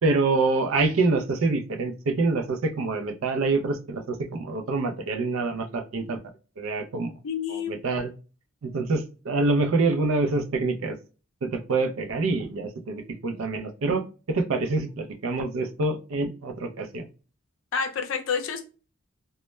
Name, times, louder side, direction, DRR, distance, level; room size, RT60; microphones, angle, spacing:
voice 1, 0.0-6.2 6.6-7.1 7.5-8.1 8.6-11.0 11.4-17.1, right 3 dB, 85° right, 0.4 m, -26 dB
voice 2, 7.2-7.8 17.7-18.6, left 6 dB, 75° left, 0.5 m, -28 dB
2.2 x 2.0 x 3.0 m
head